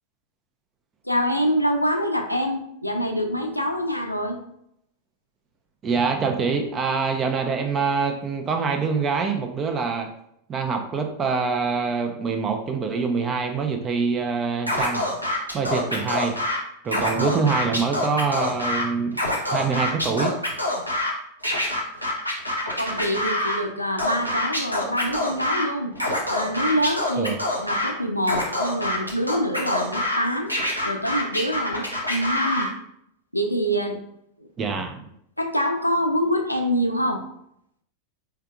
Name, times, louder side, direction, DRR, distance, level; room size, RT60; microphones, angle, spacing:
voice 1, 1.0-4.4 22.8-25.9 26.3-27.3 27.6-30.5 30.8-32.7 33.3-34.0 34.4-34.5 35.4-37.2, equal, 85° left, 3 dB, 0.5 m, -25 dB
voice 2, 5.8-10.1 10.5-15.1 15.5-16.4 16.8-19.2 19.5-20.4 27.2-27.4 34.6-35.1, right 5 dB, 25° right, 5 dB, 0.6 m, -25 dB
Scratching (performance technique), 14.7-16.6 16.9-18.8 19.1-21.1 21.4-23.6 24.0-25.6 25.9-27.9 28.2-30.2 30.5-32.7, left 1 dB, 90° right, 0.8 m, -25 dB
4.6 x 3.5 x 2.4 m, 0.73 s
figure-of-eight pair, 90°, 0 cm